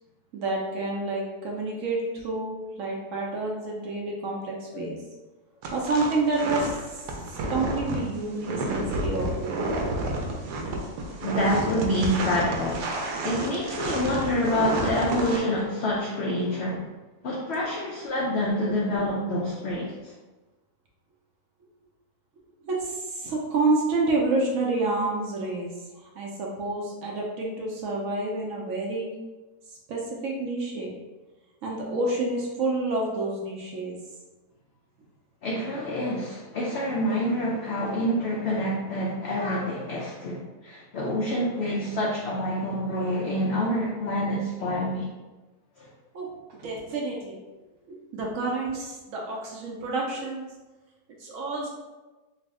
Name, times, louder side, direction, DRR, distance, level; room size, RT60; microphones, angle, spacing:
voice 1, 0.3-5.0 5.7-6.7 7.3-9.6 14.7-14.8 15.1-15.3 17.6-17.7 18.7-19.1 22.6-29.1 29.7-30.9 31.6-34.0 46.1-47.4 47.9-50.5 51.2-51.7, right 2 dB, 65° right, -2 dB, 0.9 m, -29 dB
sound 1, 5.6-15.4, right 2 dB, 85° right, 1.1 m, -30 dB
voice 2, 11.1-13.0 13.2-16.9 17.2-20.1 35.4-45.1 45.8-45.9, equal, 80° left, -3 dB, 0.5 m, -27 dB
3.3 x 2.0 x 3.6 m, 1.2 s
omnidirectional pair, 1.7 m